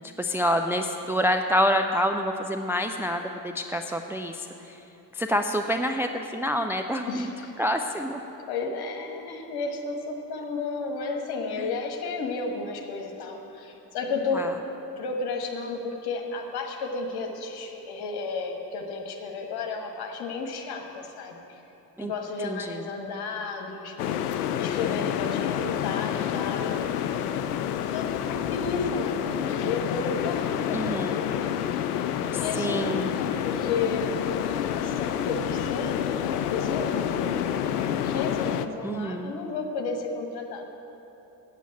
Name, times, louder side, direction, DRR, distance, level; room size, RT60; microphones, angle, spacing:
voice 1, 0.0-4.8 5.1-7.3 7.6-8.2 11.6-11.7 14.3-14.5 22.0-22.1 22.4-22.9 30.7-31.2 32.3-33.1 38.8-39.3, equal, 5° right, 5 dB, 0.4 m, -27 dB
voice 2, 7.1-7.5 8.5-14.5 15.0-21.6 22.0-24.3 24.6-27.4 27.6-31.4 31.7-31.9 32.4-37.5 37.8-40.6, left 4 dB, 50° left, 3 dB, 1.6 m, -33 dB
sound 1, 24.0-38.7, left 9 dB, 75° left, 0.6 m, -28 dB
8.3 x 8.2 x 9.1 m, 3.0 s
figure-of-eight pair, 50°, 47 cm